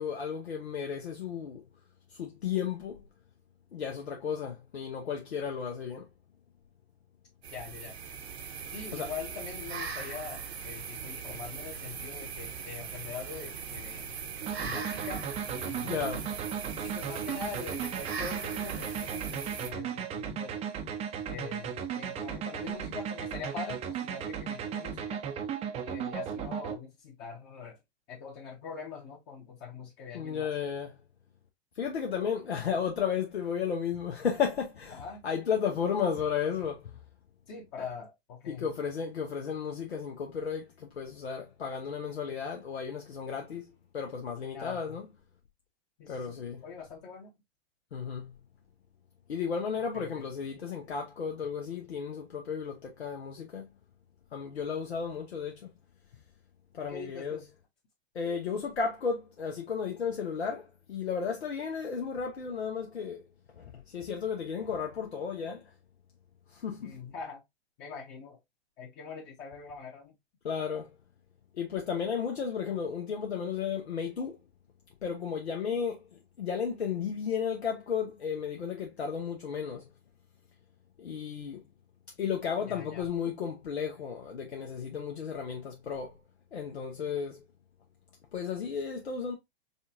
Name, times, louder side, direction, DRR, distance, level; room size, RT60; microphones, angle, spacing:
voice 1, 0.0-1.6 2.1-3.1 3.7-6.1 8.9-9.1 15.8-16.3 30.1-31.0 31.7-37.0 37.8-37.9 38.5-45.0 46.1-46.6 47.9-48.4 49.3-53.7 54.3-55.7 56.7-57.4 58.1-63.2 63.6-65.7 66.5-67.0 70.4-70.9 71.5-74.4 75.0-79.9 81.0-81.7 82.2-86.2 86.5-87.4 88.3-89.4, left 6 dB, 80° left, 0.9 m, -34 dB
sound 1, 7.4-19.7, right 6 dB, 75° right, 1.0 m, -40 dB
voice 2, 7.5-8.0 8.7-14.1 14.6-16.1 16.8-20.5 21.3-25.2 25.8-27.8 28.1-30.5 34.9-35.2 37.5-38.6 44.5-45.0 46.0-46.3 46.6-47.3 49.9-50.2 56.8-57.5 66.8-67.4 67.8-68.4 68.8-70.1 82.7-83.0, left 6 dB, 40° left, 1.3 m, -43 dB
sound 2, 14.4-26.8, right 8 dB, 20° right, 0.5 m, -36 dB
5.4 x 2.5 x 2.6 m
hypercardioid pair, 110°, 32 cm